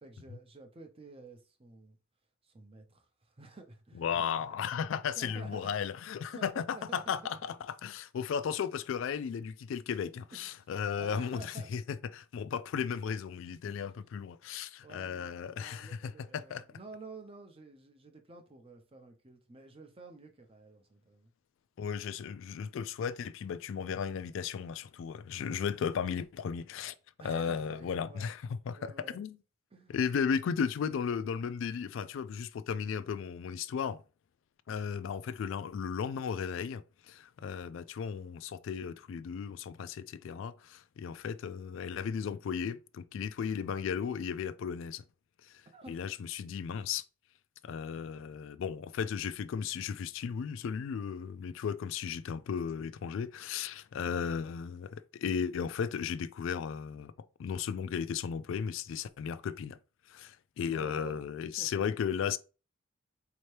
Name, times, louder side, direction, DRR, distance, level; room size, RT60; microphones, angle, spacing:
voice 1, 0.0-2.0 2.4-4.6 5.2-5.7 6.3-7.2 10.3-10.7 11.0-11.9 13.7-14.1 14.8-21.3 27.2-28.2 28.7-29.2 29.7-30.0 45.7-46.0 60.7-61.2 61.6-61.8, right 3 dB, 30° right, 0.6 m, -51 dB
voice 2, 4.0-16.6 21.8-26.9 27.2-29.4 29.9-34.0 34.7-45.0 45.4-47.0 47.6-57.1 57.4-59.8 60.1-62.4, left 7 dB, 65° left, 0.3 m, -35 dB
4.3 x 2.8 x 3.2 m
head